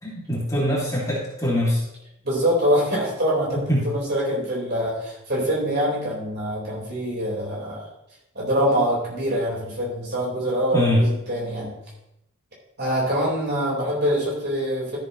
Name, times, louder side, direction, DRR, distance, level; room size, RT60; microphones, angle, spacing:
voice 1, 0.0-1.8 3.7-3.8 10.7-11.0, equal, 15° left, -5 dB, 2.5 m, -23 dB
voice 2, 2.2-7.9 8.3-11.8 12.8-15.0, equal, 50° right, -5 dB, 4.5 m, -24 dB
13.5 x 7.7 x 3.1 m, 0.82 s
head